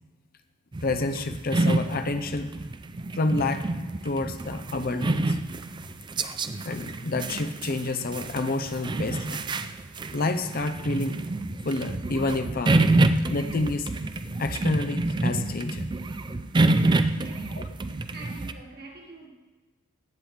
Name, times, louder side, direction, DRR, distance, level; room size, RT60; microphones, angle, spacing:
sound 1, 0.7-18.5, right 2 dB, 20° right, 0.4 m, -27 dB
voice 1, 0.8-2.5 3.1-3.6 4.0-5.4 6.6-9.4 10.1-11.2 11.6-12.9 13.3-13.9 14.4-15.9, left 2 dB, 45° left, 0.6 m, -28 dB
sound 2, 9.3-9.8, left 1 dB, ahead, 1.6 m, -49 dB
voice 2, 17.1-19.3, right 2 dB, 50° right, 1.9 m, -46 dB
15.5 x 8.8 x 3.3 m
head